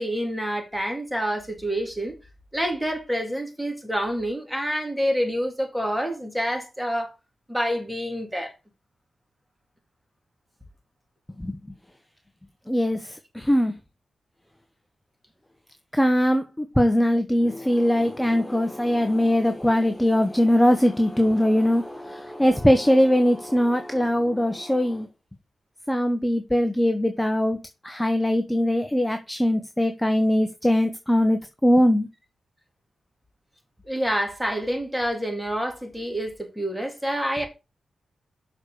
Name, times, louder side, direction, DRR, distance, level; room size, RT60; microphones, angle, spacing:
voice 1, 0.0-2.1 2.5-7.2 7.5-8.5 33.8-37.5, equal, 5° right, 3.5 m, -27 dB
voice 2, 12.7-13.0 13.3-13.7 15.9-25.1 25.9-27.6 27.8-32.1, equal, 10° left, 1.1 m, -21 dB
6.6 x 4.8 x 6.8 m
supercardioid pair, 40°, 0 cm